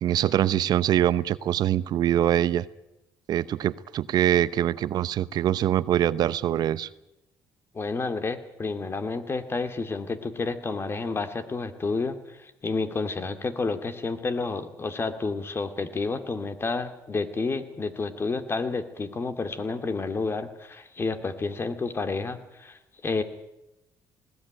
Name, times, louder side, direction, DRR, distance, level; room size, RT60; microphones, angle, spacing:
voice 1, 0.0-2.6 3.3-6.9, right 11 dB, 65° right, 17 dB, 0.7 m, -24 dB
voice 2, 7.7-23.2, left 4 dB, 30° left, 9 dB, 2.2 m, -30 dB
19.5 x 18.0 x 9.2 m, 0.90 s
cardioid pair, 90°, 8 cm